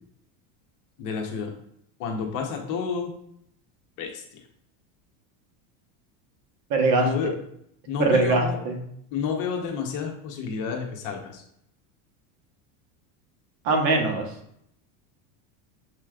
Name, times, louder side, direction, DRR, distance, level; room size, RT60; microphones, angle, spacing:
voice 1, 1.0-1.5 2.0-3.1 4.0-4.4 6.9-7.3 7.9-8.6 9.1-11.4, left 6 dB, 50° left, 2 dB, 0.9 m, -30 dB
voice 2, 6.7-7.3 8.0-8.8 13.6-14.3, right 3 dB, 55° right, 2 dB, 1.1 m, -22 dB
6.8 x 3.0 x 2.4 m, 0.72 s
cardioid pair, 150°, 42 cm